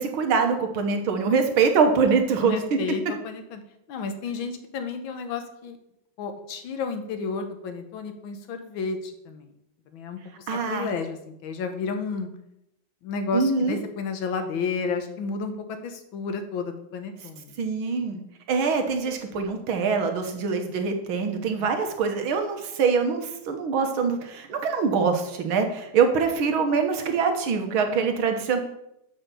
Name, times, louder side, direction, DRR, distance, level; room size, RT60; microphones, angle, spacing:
voice 1, 0.0-2.6 10.5-10.9 13.3-13.8 17.6-18.2 18.5-28.6, right 5 dB, 80° right, 5 dB, 2.0 m, -24 dB
voice 2, 2.4-3.6 3.9-5.8 6.2-9.5 9.9-11.2 11.4-12.3 13.0-17.5 21.6-21.7, left 4 dB, 75° left, 7 dB, 1.8 m, -32 dB
7.5 x 5.9 x 6.8 m, 0.81 s
omnidirectional pair, 2.2 m